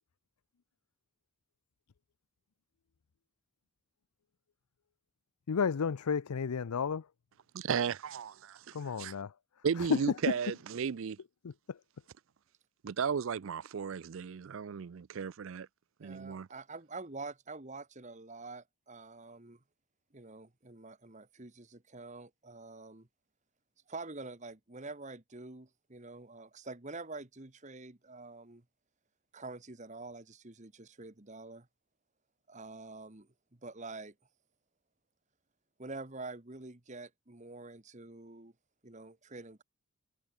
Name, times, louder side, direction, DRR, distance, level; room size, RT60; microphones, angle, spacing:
voice 1, 5.5-7.1 8.7-9.3 9.8-10.0 11.4-11.8, left 6 dB, 90° left, 0.5 m, -32 dB
voice 2, 7.5-9.1 9.6-11.2 12.8-15.7 16.0-16.5, right 6 dB, 60° right, 0.4 m, -35 dB
voice 3, 16.0-19.6 20.1-23.1 23.9-28.6 29.3-31.7 32.5-34.1 35.8-38.5 38.8-39.6, right 3 dB, 30° right, 1.4 m, -46 dB
head